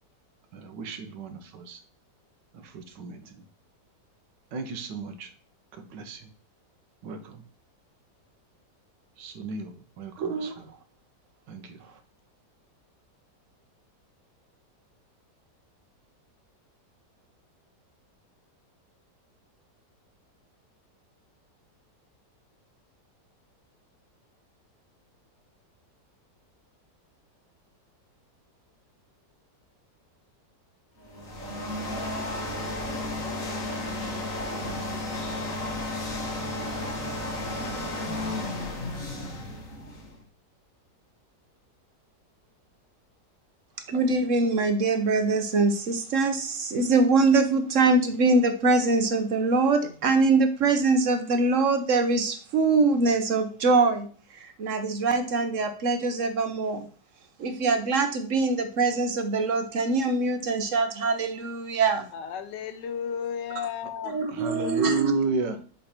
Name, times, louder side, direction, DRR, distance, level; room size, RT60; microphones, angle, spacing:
voice 1, 0.5-1.8 2.5-3.4 4.5-5.3 5.7-6.3 7.0-7.4 9.2-10.7 11.5-11.8 64.3-65.6, right 4 dB, 85° right, 7 dB, 1.6 m, -33 dB
voice 2, 10.2-10.5 43.9-54.1 54.3-56.8 57.4-62.1 64.1-65.1, right 3 dB, 55° right, 7 dB, 1.0 m, -23 dB
sound 1, 31.0-40.2, left 1 dB, 50° left, 1.9 m, -33 dB
voice 3, 62.1-64.2, left 7 dB, 85° left, 9 dB, 1.4 m, -33 dB
7.7 x 3.4 x 4.3 m, 0.41 s
omnidirectional pair, 1.9 m